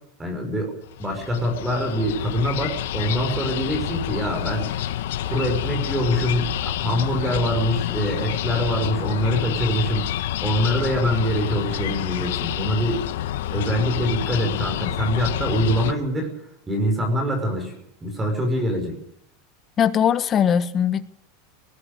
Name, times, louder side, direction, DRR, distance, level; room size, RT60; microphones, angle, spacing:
voice 1, 0.2-0.7 1.0-4.7 5.2-13.0 13.5-16.4 16.7-19.0, equal, 10° right, 5.7 m, -24 dB
sound 1, 0.8-15.9, left 12 dB, 80° left, 1.2 m, -28 dB
voice 2, 19.8-21.0, left 8 dB, 25° left, 1.3 m, -20 dB
20.0 x 19.5 x 6.8 m
supercardioid pair, 155°, 0 cm